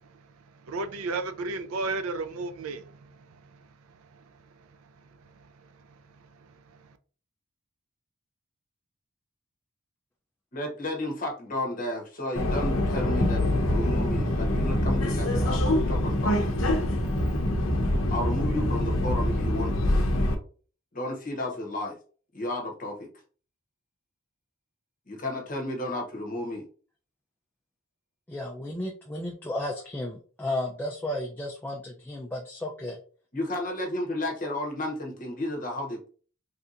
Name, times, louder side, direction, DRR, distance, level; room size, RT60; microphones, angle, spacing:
voice 1, 0.2-4.4 5.1-7.0, right 3 dB, 80° right, 0.4 m, -36 dB
voice 2, 10.5-15.6 15.9-16.5 18.1-19.8 20.9-21.9 22.3-23.1 25.1-26.6 33.3-36.1, left 1 dB, 40° left, 0.9 m, -32 dB
Subway metro underground, 12.4-20.4, left 1 dB, 70° left, 0.6 m, -25 dB
voice 3, 28.3-33.0, left 1 dB, 10° left, 0.3 m, -33 dB
3.3 x 2.7 x 2.5 m
head